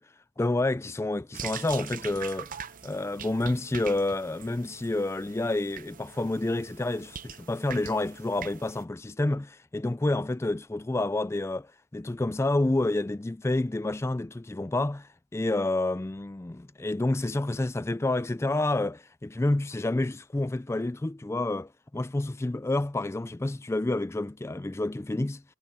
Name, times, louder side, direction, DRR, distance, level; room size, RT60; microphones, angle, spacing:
voice 1, 0.4-2.6 2.8-25.4, left 2 dB, 15° left, 0.3 m, -29 dB
sound 1, 1.3-8.8, right 8 dB, 40° right, 0.8 m, -43 dB
head